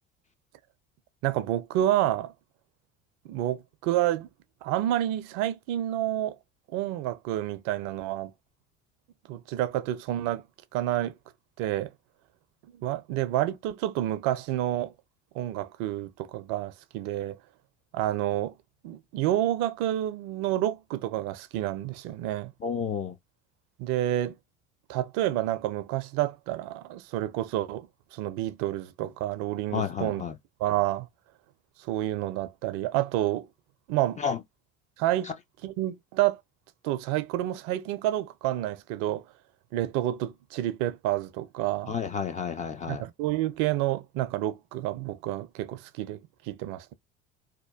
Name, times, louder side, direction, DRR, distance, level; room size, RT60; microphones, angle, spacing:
voice 1, 1.2-2.3 3.2-4.3 4.6-6.4 6.7-8.3 9.3-10.4 10.7-11.1 11.6-11.9 12.8-14.9 15.3-17.4 17.9-18.5 18.8-22.5 23.8-24.3 24.9-30.2 30.6-31.1 31.8-33.5 33.9-34.2 35.0-35.3 35.6-36.4 36.8-39.2 39.7-42.0 42.9-46.9, right 13 dB, 50° right, 0.5 m, -29 dB
voice 2, 22.6-23.1 29.7-30.4 34.2-34.4 41.9-43.0, left 7 dB, 20° left, 0.3 m, -31 dB
2.8 x 2.2 x 2.2 m
figure-of-eight pair, 65°, 37 cm